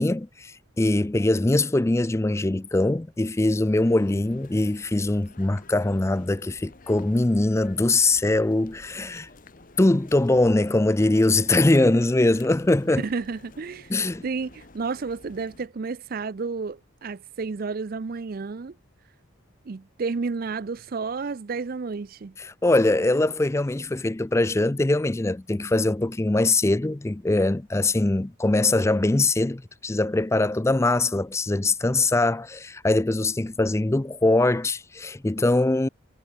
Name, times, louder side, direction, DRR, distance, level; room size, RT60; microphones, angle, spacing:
voice 1, 0.0-9.3 9.8-13.0 13.9-14.2 22.4-35.9, left 2 dB, 15° left, 0.4 m, -22 dB
sound 1, 3.8-15.7, left 2 dB, 40° left, 1.2 m, -50 dB
voice 2, 13.0-13.9 14.2-18.8 19.6-22.4, right 4 dB, 45° right, 0.5 m, -31 dB
head